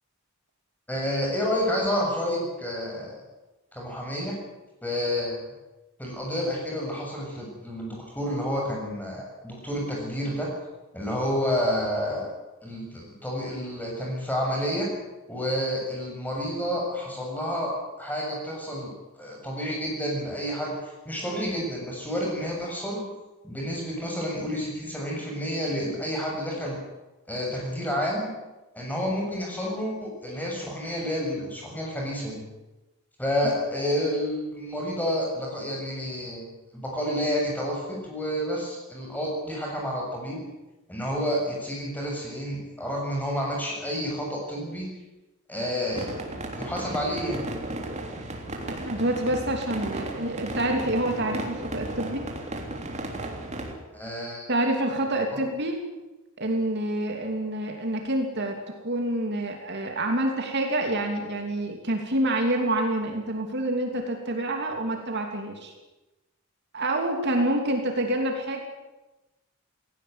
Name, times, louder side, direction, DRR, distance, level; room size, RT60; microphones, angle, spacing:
voice 1, 0.9-3.2 3.7-4.3 4.8-5.4 6.0-10.5 10.9-12.3 12.6-14.9 15.3-17.7 18.0-23.0 23.4-26.8 27.3-28.3 28.7-32.4 33.2-36.4 36.7-40.4 40.9-44.9 45.5-46.1 46.5-47.4 53.9-54.5, equal, 10° left, -2 dB, 7.3 m, -29 dB
sound 1, 45.9-53.7, right 1 dB, 30° right, 3.4 m, -35 dB
voice 2, 48.6-52.3 54.5-55.8 56.4-65.7 66.7-68.6, right 1 dB, 50° right, 3 dB, 3.0 m, -27 dB
18.0 x 17.5 x 9.7 m, 1.0 s
head